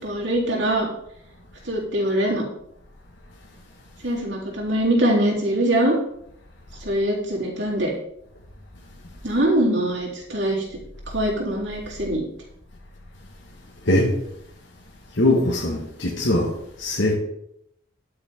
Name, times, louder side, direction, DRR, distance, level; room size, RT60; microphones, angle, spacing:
voice 1, 0.0-0.9 1.7-2.4 4.0-6.0 6.8-7.9 9.2-10.6 11.1-12.2, right 1 dB, 60° right, -3 dB, 3.9 m, -22 dB
voice 2, 15.2-16.5 16.8-17.1, left 1 dB, 65° left, -2 dB, 1.9 m, -21 dB
11.5 x 9.7 x 3.8 m, 0.75 s
head